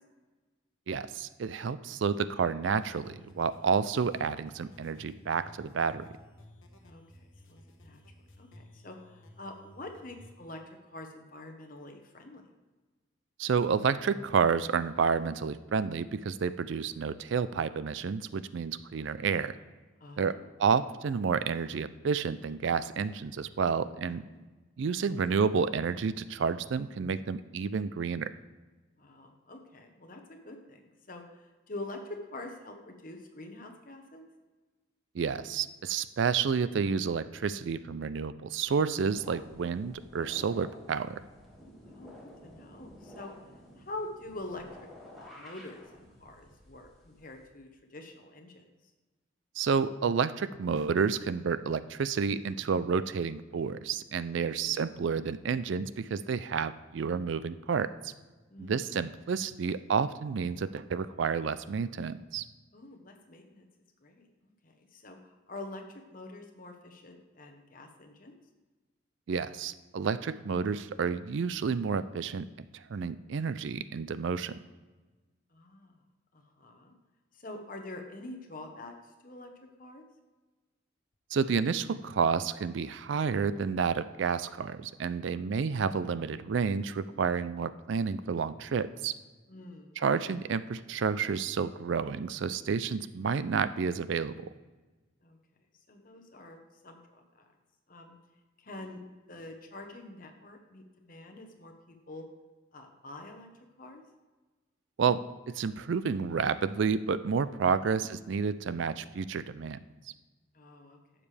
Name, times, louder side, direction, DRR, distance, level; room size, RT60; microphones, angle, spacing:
voice 1, 0.9-6.0 13.4-19.5 20.2-24.2 24.8-28.3 35.1-41.2 49.6-58.1 58.6-62.4 69.3-72.5 72.9-74.5 81.3-89.1 90.0-94.5 105.0-105.2 105.5-109.8, right 5 dB, 65° right, 15 dB, 0.4 m, -30 dB
sound 1, 2.8-10.3, left 1 dB, 80° left, 1.2 m, -55 dB
voice 2, 6.8-8.0 8.4-10.6 10.9-12.4 20.0-20.4 23.8-24.4 29.0-34.3 41.8-42.1 42.4-43.3 43.8-44.6 45.2-48.7 54.4-54.8 58.5-58.8 62.7-63.7 64.0-64.3 64.6-65.8 66.1-68.4 75.5-75.9 76.3-76.9 77.4-78.9 79.2-79.5 79.8-80.0 85.2-85.4 89.5-90.0 95.2-95.4 95.9-96.6 96.8-97.5 97.9-98.2 98.6-99.0 99.3-102.2 102.7-103.5 103.8-104.0 107.9-108.1 110.5-111.0, left 2 dB, 45° left, 4 dB, 1.1 m, -46 dB
sound 2, 38.6-47.5, left 1 dB, ahead, 2.0 m, -52 dB
11.5 x 7.4 x 3.4 m, 1.2 s
head